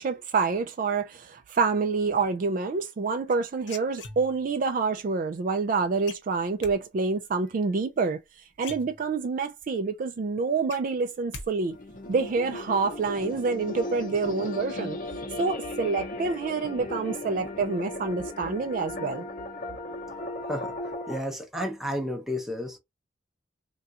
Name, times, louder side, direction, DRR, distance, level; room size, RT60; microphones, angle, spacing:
voice 1, 0.0-8.2 8.6-11.8 12.1-15.0 15.4-19.2, right 4 dB, 45° right, 0.3 m, -27 dB
sound 1, 3.3-4.6 6.1-6.7 8.2-8.3 8.6-9.4 9.8-9.9 10.2-11.5 11.7-12.2, left 4 dB, 70° left, 0.9 m, -42 dB
sound 2, 11.6-21.2, left 2 dB, 45° left, 0.7 m, -36 dB
voice 2, 21.1-22.8, equal, ahead, 0.7 m, -31 dB
3.5 x 2.3 x 2.8 m
head